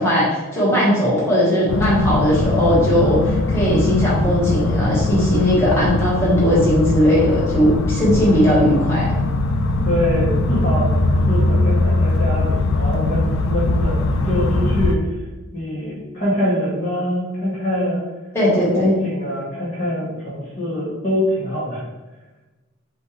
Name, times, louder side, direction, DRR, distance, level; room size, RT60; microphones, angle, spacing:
voice 1, 0.0-9.0 18.3-18.9, equal, 10° left, -8 dB, 1.3 m, -18 dB
sound 1, 1.7-15.0, left 2 dB, 70° left, 0.4 m, -20 dB
voice 2, 9.8-15.0 15.5-18.0 18.6-21.8, left 1 dB, 35° left, -7 dB, 1.1 m, -24 dB
6.2 x 2.4 x 3.1 m, 1.2 s
head